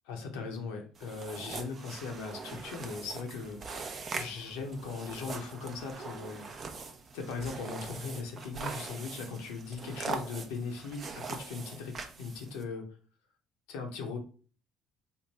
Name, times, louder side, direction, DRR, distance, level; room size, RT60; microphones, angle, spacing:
voice 1, 0.0-3.6 4.1-6.5 6.8-6.9 7.1-12.9 13.7-14.2, left 4 dB, 85° left, 3 dB, 0.7 m, -39 dB
sound 1, 1.0-12.6, right 4 dB, 45° right, 0.6 m, -42 dB
3.5 x 2.2 x 4.1 m, 0.39 s
supercardioid pair, 75°, 0 cm